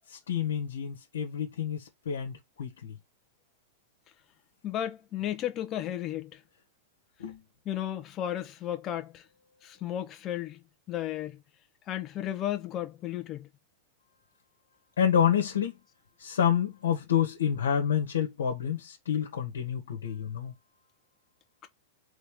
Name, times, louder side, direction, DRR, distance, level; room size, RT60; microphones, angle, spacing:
voice 1, 0.1-3.0 7.2-7.4 15.0-15.8 16.2-20.5, left 8 dB, 85° left, 1.5 m, -28 dB
voice 2, 4.6-6.4 7.7-9.2 9.6-10.6 10.9-11.4 11.9-13.5, left 11 dB, 35° left, 1.1 m, -34 dB
3.8 x 3.5 x 3.6 m
hypercardioid pair, 115°, 0 cm